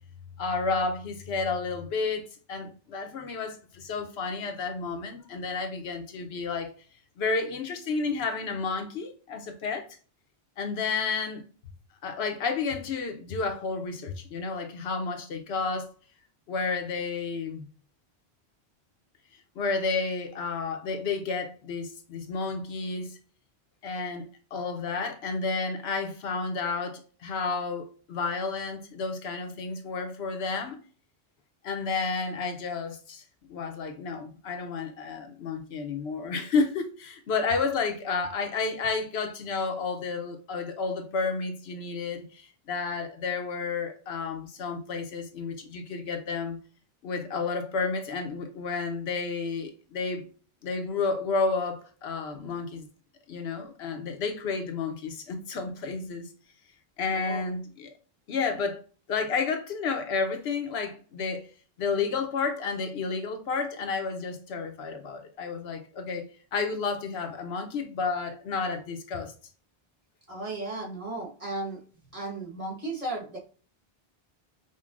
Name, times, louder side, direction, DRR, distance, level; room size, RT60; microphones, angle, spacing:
voice 1, 0.4-6.7 7.2-9.9 10.6-11.4 12.0-15.9 16.5-17.7 19.6-23.2 23.8-30.8 31.6-33.2 33.5-46.6 47.0-50.3 50.6-52.9 53.3-56.3 57.0-57.9 58.3-58.8 59.1-61.5 61.8-66.3 66.5-69.3, left 4 dB, 85° left, 1.0 m, -31 dB
voice 2, 57.1-57.5 70.3-71.8 72.1-73.4, right 2 dB, 35° right, 1.3 m, -35 dB
5.2 x 2.1 x 2.4 m
omnidirectional pair, 1.0 m